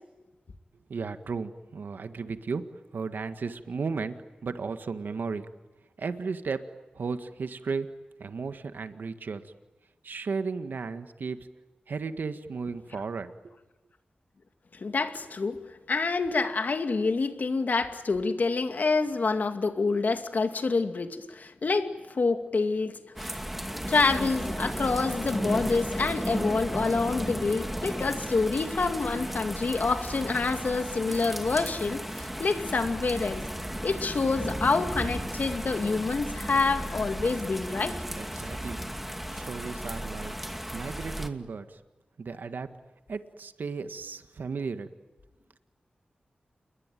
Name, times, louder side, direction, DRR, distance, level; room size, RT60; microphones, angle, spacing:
voice 1, 0.9-2.6 2.9-4.1 4.4-5.5 6.0-6.6 6.9-7.9 8.2-9.4 10.0-11.4 11.9-13.3 38.2-38.8 39.3-40.3 40.7-41.8 42.2-42.7 43.1-44.9, right 4 dB, 80° right, 9 dB, 1.7 m, -34 dB
voice 2, 14.7-15.6 15.9-23.0 23.9-33.4 33.8-38.0, left 4 dB, 65° left, 7 dB, 2.4 m, -27 dB
sound 1, 23.2-41.3, equal, 5° right, 2.3 m, -34 dB
29.0 x 22.0 x 9.2 m, 1.1 s
wide cardioid pair, 70°, 3 cm